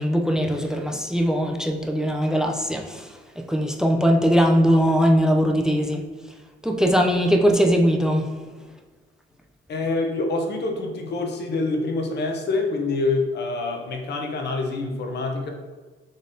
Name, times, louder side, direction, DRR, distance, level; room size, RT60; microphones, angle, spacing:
voice 1, 0.0-3.1 3.4-6.0 6.6-8.3, equal, 5° right, 3 dB, 0.3 m, -20 dB
voice 2, 9.7-15.5, left 3 dB, 60° left, 3 dB, 0.7 m, -26 dB
3.9 x 3.4 x 2.6 m, 1.4 s
cardioid pair, 90°, 20 cm